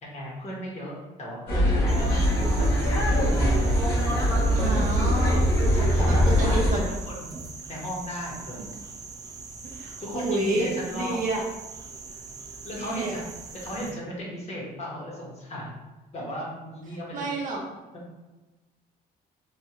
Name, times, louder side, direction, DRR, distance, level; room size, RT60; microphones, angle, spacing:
voice 1, 0.0-2.0 2.6-3.6 4.1-4.6 5.7-7.4 7.7-8.7 9.8-11.2 12.1-12.2 12.6-13.2 13.5-15.7 16.1-17.3 17.9-18.0, equal, 40° left, -4 dB, 1.1 m, -36 dB
sound 1, 1.5-6.7, equal, 85° left, 1.2 m, -22 dB
sound 2, 1.9-13.9, right 4 dB, 20° right, 0.4 m, -42 dB
voice 2, 4.6-5.6 6.0-6.8 9.6-11.4 12.8-13.1 17.1-17.6, right 2 dB, 50° right, -1 dB, 0.7 m, -29 dB
3.2 x 2.3 x 2.9 m, 1.1 s
cardioid pair, 110°, 17 cm